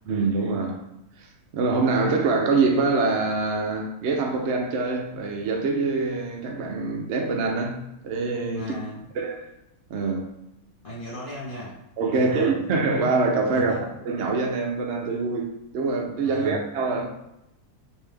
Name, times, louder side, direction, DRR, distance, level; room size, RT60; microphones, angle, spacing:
voice 1, 0.1-0.8 1.2-8.8 9.2-9.5 9.9-10.3 12.0-13.8 14.0-17.1, right 3 dB, 65° right, 0.7 m, -25 dB
voice 2, 8.5-9.1 10.8-11.8 12.2-12.6 13.5-13.9 16.2-16.6, left 1 dB, 35° left, 1.3 m, -36 dB
3.6 x 2.7 x 3.3 m
omnidirectional pair, 1.7 m